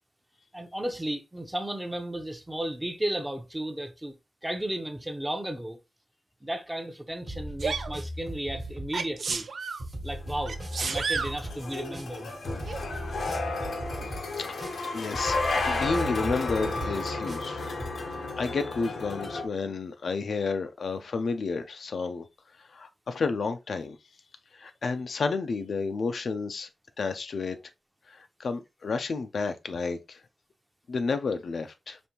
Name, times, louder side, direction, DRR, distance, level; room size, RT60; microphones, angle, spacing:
voice 1, 0.5-4.1 4.4-5.8 6.4-9.5 10.0-12.3 14.0-14.1, right 1 dB, 10° right, 0.6 m, -34 dB
sound 1, 7.3-17.9, equal, 35° right, 1.1 m, -38 dB
Sneeze, 7.6-7.9 8.9-9.8 10.5-11.4 12.7-12.8, right 5 dB, 70° right, 0.5 m, -31 dB
sound 2, 10.2-19.5, left 3 dB, 85° left, 0.8 m, -32 dB
voice 2, 14.9-15.4 15.7-22.3 22.6-24.0 24.5-26.7 27.0-27.7 28.1-30.2 30.9-32.0, left 4 dB, 70° left, 0.5 m, -31 dB
5.2 x 2.6 x 2.9 m
wide cardioid pair, 155°, 0 cm